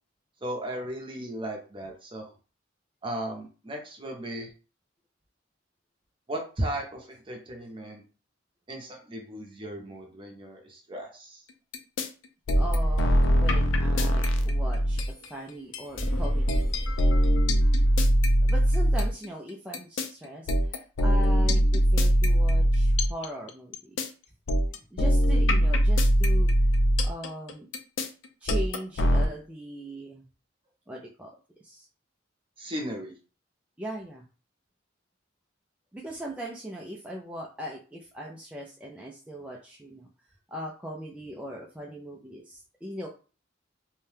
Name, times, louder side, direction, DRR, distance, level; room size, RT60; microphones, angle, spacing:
voice 1, 0.4-2.3 3.0-4.5 6.3-8.0 8.7-11.4 32.6-33.1, right 1 dB, 30° right, 1 dB, 0.7 m, -36 dB
sound 1, 11.7-12.1 12.5-15.3 15.7-19.3 19.7-24.1 24.5-29.3, equal, 80° left, 0.5 m, -22 dB
sound 2, 12.5-14.3 15.9-17.9, equal, 30° left, 0.8 m, -28 dB
voice 2, 12.6-15.0 15.3-16.6 18.4-24.0 24.9-26.5 27.0-27.7 28.4-30.2 30.9-31.4 31.6-31.9 33.8-34.3 35.9-40.1 40.5-43.1, equal, 5° right, -3 dB, 0.4 m, -39 dB
2.7 x 2.2 x 3.3 m, 0.35 s
head